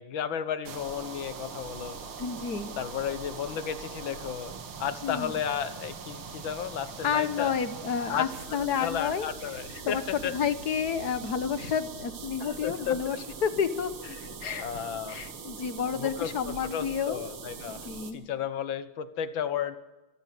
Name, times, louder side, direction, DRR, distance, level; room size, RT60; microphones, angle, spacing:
voice 1, 0.0-2.0 2.8-4.5 4.8-7.5 8.1-8.3 8.8-10.4 12.4-13.0 14.6-15.2 16.0-17.8 18.1-19.8, left 8 dB, 70° left, 12 dB, 1.8 m, -33 dB
sound 1, 0.6-18.1, right 5 dB, 80° right, 2.6 m, -42 dB
voice 2, 2.2-2.7 5.0-5.4 7.0-9.3 9.8-13.9 14.4-17.2 17.6-18.2, left 7 dB, 55° left, 11 dB, 1.6 m, -30 dB
26.0 x 13.5 x 7.7 m, 1.1 s
omnidirectional pair, 2.3 m